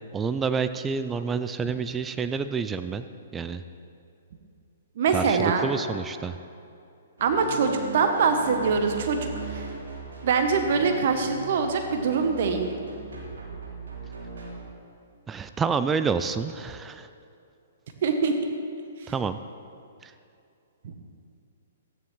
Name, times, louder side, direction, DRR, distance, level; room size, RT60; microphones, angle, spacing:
voice 1, 0.1-3.0 3.3-3.6 5.1-6.4 15.3-17.1 19.1-19.4 20.0-20.1, right 5 dB, 15° right, 11 dB, 0.4 m, -28 dB
voice 2, 5.0-5.7 7.2-9.7 10.2-12.7 18.0-18.3 19.0-19.1 20.8-20.9, right 5 dB, 55° right, 5 dB, 0.9 m, -24 dB
sound 1, 7.2-14.6, right 3 dB, 75° right, 2.7 m, -39 dB
14.0 x 9.7 x 3.2 m, 2.5 s
hypercardioid pair, 125°, 0 cm